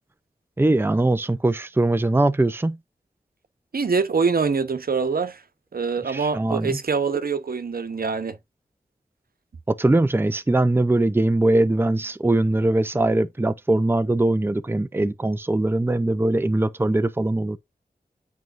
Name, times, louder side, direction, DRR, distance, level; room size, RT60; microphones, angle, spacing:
voice 1, 0.6-2.8 6.0-6.8 9.7-17.6, right 2 dB, 15° right, 0.5 m, -21 dB
voice 2, 3.7-5.4 5.7-8.4, right 5 dB, 70° right, 0.9 m, -24 dB
9.2 x 4.6 x 2.5 m
wide cardioid pair, 65°, 16 cm